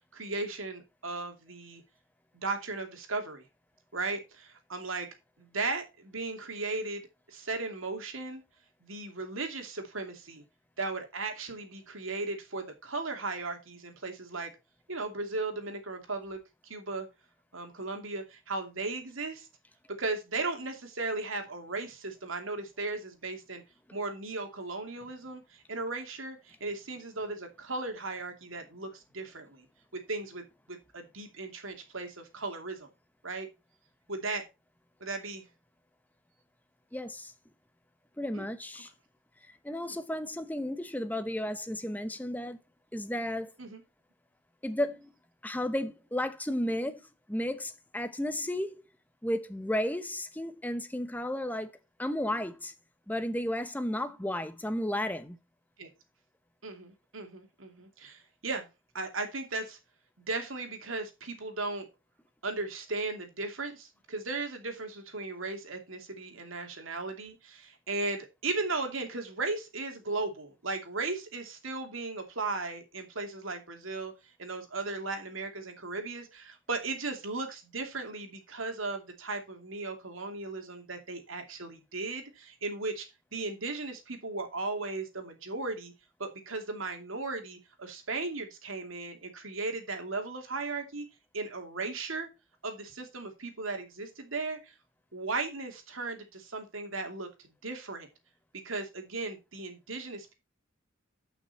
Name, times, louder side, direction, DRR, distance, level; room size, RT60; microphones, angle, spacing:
voice 1, 0.1-1.8 2.4-3.4 3.9-5.1 5.4-7.0 7.3-8.4 8.8-10.4 10.8-14.5 14.9-17.1 17.5-19.5 20.0-23.6 23.9-29.7 29.9-32.9 33.2-33.5 34.1-34.4 35.0-35.4 38.3-38.5 39.9-40.0 43.6-43.8 55.8-55.9 56.6-58.7 58.9-59.8 60.3-61.9 62.4-74.1 74.4-83.1 83.3-85.9 86.2-91.1 91.3-92.3 92.6-94.7 95.1-97.3 97.6-98.1 98.6-100.3, right 3 dB, 85° right, 2.6 m, -36 dB
voice 2, 36.9-37.3 38.2-38.9 39.5-42.6 42.9-43.5 44.6-45.1 45.4-47.0 47.3-48.8 49.2-51.7 52.0-52.7 53.1-55.4, left 1 dB, 10° left, 0.8 m, -33 dB
11.5 x 6.0 x 4.2 m
head